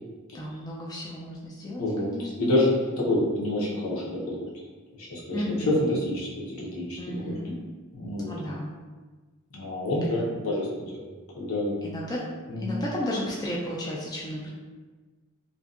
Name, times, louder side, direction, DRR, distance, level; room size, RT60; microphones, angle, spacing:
voice 1, 0.3-2.6 5.3-5.8 7.0-7.6 8.2-8.7 11.8-12.3 12.6-14.5, left 1 dB, 20° left, -4 dB, 0.3 m, -33 dB
voice 2, 1.8-2.7 3.0-4.4 4.9-7.3 7.9-8.3 9.5-11.1 11.4-11.7 12.5-12.7, left 1 dB, 75° left, -5 dB, 0.7 m, -28 dB
2.6 x 2.2 x 2.4 m, 1.3 s
head